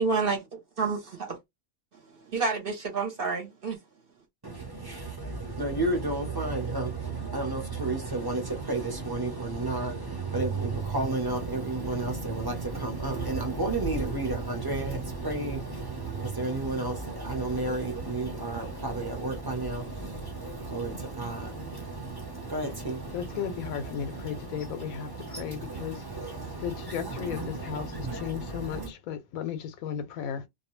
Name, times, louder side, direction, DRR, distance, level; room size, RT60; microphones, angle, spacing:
voice 1, 0.0-1.4 1.9-3.8, right 4 dB, 50° right, 0.8 m, -29 dB
voice 2, 4.4-28.9, right 2 dB, 20° right, 0.6 m, -32 dB
voice 3, 23.1-25.1 25.4-26.0 26.6-27.9 28.1-30.5, left 8 dB, 90° left, 1.0 m, -35 dB
2.4 x 2.2 x 3.0 m
omnidirectional pair, 1.4 m